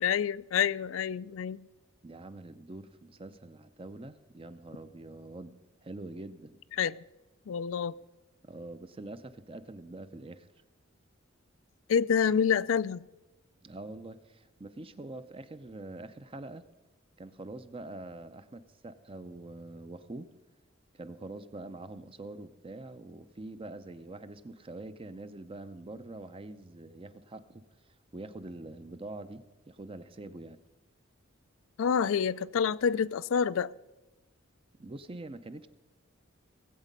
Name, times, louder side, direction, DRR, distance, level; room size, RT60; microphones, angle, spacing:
voice 1, 0.0-1.6 6.8-6.9 7.5-7.9 11.9-13.0 31.8-33.7, left 7 dB, 70° left, 0.4 m, -27 dB
voice 2, 2.0-5.5 5.8-6.6 8.4-10.5 13.6-16.6 17.2-20.3 20.9-27.6 28.1-30.6 34.8-35.7, right 2 dB, 25° right, 0.6 m, -44 dB
18.5 x 8.2 x 5.3 m
head